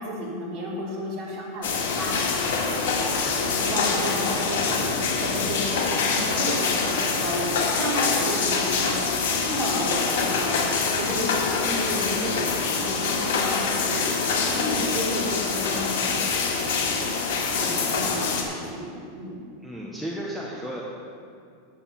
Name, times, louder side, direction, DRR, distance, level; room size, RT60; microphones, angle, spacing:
voice 1, 0.0-3.1 3.5-4.9 5.2-8.9 9.3-10.7 11.0-14.2 14.5-17.1 17.4-19.4, equal, 35° right, -5 dB, 3.2 m, -32 dB
sound 1, 1.6-18.4, left 5 dB, 75° left, 2.1 m, -25 dB
voice 2, 19.6-20.8, right 1 dB, ahead, -5 dB, 0.9 m, -33 dB
9.2 x 9.2 x 5.7 m, 2.3 s
supercardioid pair, 165°, 0 cm